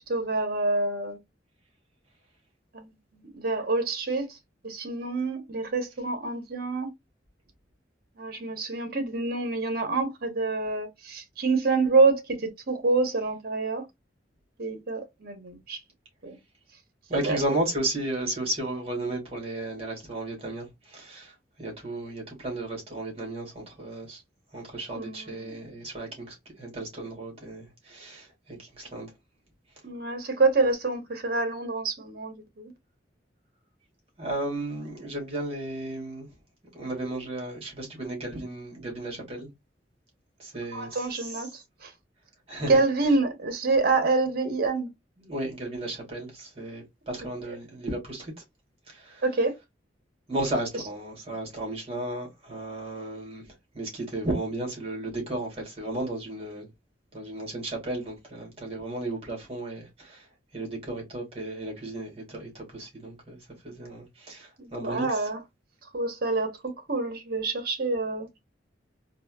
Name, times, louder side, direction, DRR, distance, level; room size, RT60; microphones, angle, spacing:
voice 1, 0.1-1.2 2.7-4.4 4.6-6.9 8.2-13.8 14.6-15.8 16.2-16.4 17.1-17.4 24.9-25.7 29.8-32.7 40.7-41.9 42.7-44.9 47.5-47.6 49.2-49.5 64.6-65.4 65.9-68.4, right 3 dB, 55° right, 1.1 m, -27 dB
voice 2, 17.1-24.2 24.5-29.1 34.2-36.3 36.7-39.5 40.4-41.3 42.5-42.8 45.2-48.3 48.9-49.2 50.3-56.7 57.1-60.3 60.5-63.4 63.6-65.2, right 1 dB, 35° right, 2.2 m, -34 dB
4.1 x 2.6 x 2.3 m
head